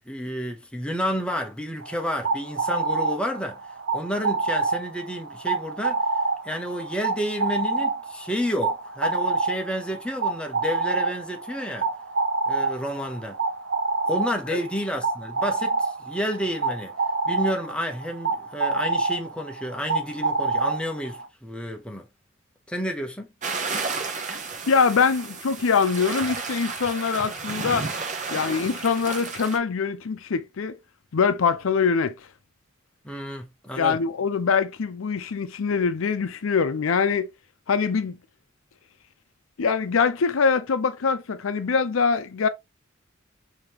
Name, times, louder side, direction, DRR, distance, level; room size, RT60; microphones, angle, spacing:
voice 1, 0.1-3.6 3.9-6.0 6.4-11.9 12.5-13.4 14.1-16.9 17.3-22.1 22.7-23.3 33.0-34.0, equal, 5° left, 0.8 m, -30 dB
sound 1, 1.8-21.3, right 3 dB, 70° right, 0.7 m, -27 dB
sound 2, 23.4-29.6, right 4 dB, 40° right, 0.9 m, -32 dB
voice 2, 24.7-27.9 28.3-30.8 31.1-32.1 33.8-37.3 37.7-38.2 39.6-42.5, left 5 dB, 85° left, 0.5 m, -23 dB
5.0 x 2.9 x 2.9 m
head